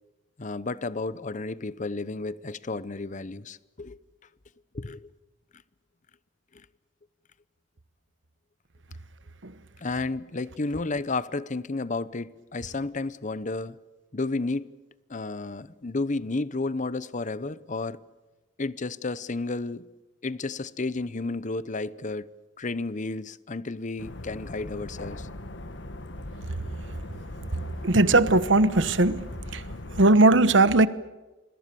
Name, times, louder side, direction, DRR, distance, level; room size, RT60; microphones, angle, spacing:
voice 1, 0.4-4.0 4.7-5.1 9.8-13.8 14.1-14.7 15.1-18.0 18.6-19.9 20.2-22.3 22.6-25.3, left 3 dB, 40° left, 0.8 m, -32 dB
sound 1, 24.0-30.1, left 1 dB, 70° left, 1.6 m, -39 dB
voice 2, 27.8-29.6 29.9-30.9, right 2 dB, 75° right, 1.1 m, -19 dB
27.5 x 22.0 x 6.9 m
head